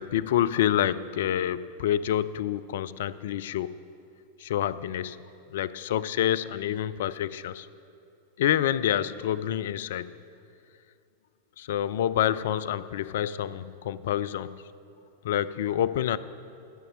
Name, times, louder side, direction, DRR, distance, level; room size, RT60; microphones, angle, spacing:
voice 1, 0.0-3.7 4.4-5.2 5.5-7.7 8.4-10.1 11.6-14.6 15.2-16.2, left 11 dB, 55° left, 16 dB, 0.3 m, -27 dB
13.0 x 6.7 x 7.3 m, 2.5 s
figure-of-eight pair, 90°, 0 cm